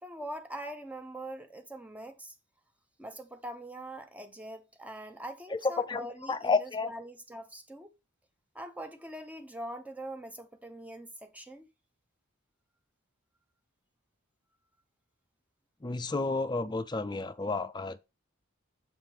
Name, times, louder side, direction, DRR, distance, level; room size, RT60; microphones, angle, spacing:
voice 1, 0.0-2.3 3.0-7.9 8.5-11.7, right 1 dB, 5° right, 0.8 m, -43 dB
voice 2, 5.5-6.9 15.8-18.0, left 3 dB, 20° left, 0.5 m, -31 dB
7.5 x 3.6 x 4.5 m
head